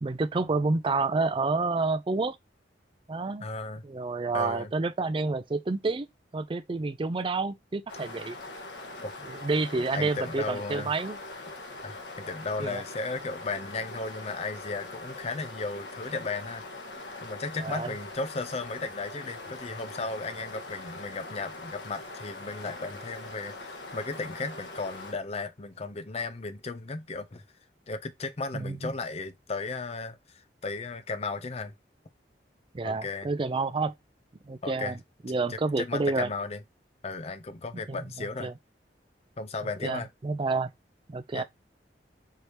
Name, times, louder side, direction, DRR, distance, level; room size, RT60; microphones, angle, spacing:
voice 1, 0.0-2.4 3.1-3.5 3.8-6.1 6.3-8.4 9.3-11.2 12.6-12.8 17.6-18.0 28.5-28.9 32.7-33.9 34.5-35.0 35.2-36.3 37.9-38.5 39.8-40.7 41.1-41.4, right 3 dB, 30° right, 0.4 m, -29 dB
voice 2, 3.4-3.8 4.3-4.7 9.0-9.1 9.7-10.9 11.8-16.6 17.2-27.4 27.9-31.7 32.8-33.3 34.6-35.0 35.5-36.6 37.0-38.5 39.4-40.1 41.3-41.4, left 3 dB, 35° left, 0.5 m, -35 dB
sound 1, 7.9-25.1, left 2 dB, 85° left, 1.4 m, -42 dB
4.6 x 2.8 x 3.2 m
head